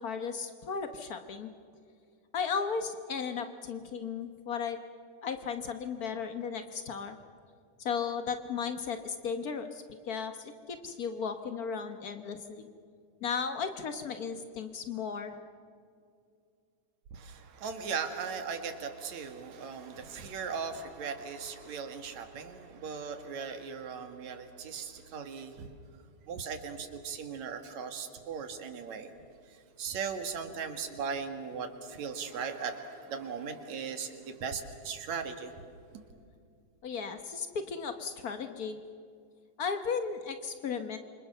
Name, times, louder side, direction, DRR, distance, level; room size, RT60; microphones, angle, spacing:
voice 1, 0.0-1.5 2.3-4.8 5.2-7.2 7.8-12.7 13.2-15.3 36.8-38.8 39.6-41.0, left 6 dB, 85° left, 8 dB, 0.8 m, -35 dB
voice 2, 17.1-25.7 26.3-29.1 29.5-35.5 35.9-36.0, right 6 dB, 70° right, 6 dB, 3.1 m, -38 dB
28.0 x 25.0 x 6.8 m, 2.4 s
omnidirectional pair, 3.4 m